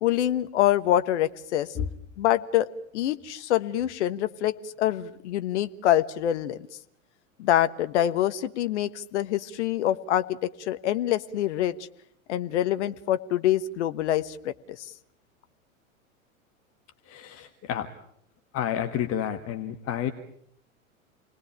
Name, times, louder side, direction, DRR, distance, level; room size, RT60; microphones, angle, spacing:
voice 1, 0.0-1.7 2.2-2.7 2.9-6.6 7.4-11.7 12.3-14.5, left 12 dB, 55° left, 11 dB, 1.3 m, -25 dB
voice 2, 17.1-17.9 18.5-20.1, left 9 dB, 35° left, 7 dB, 1.6 m, -30 dB
28.5 x 19.5 x 8.9 m, 0.71 s
figure-of-eight pair, 85°, 41 cm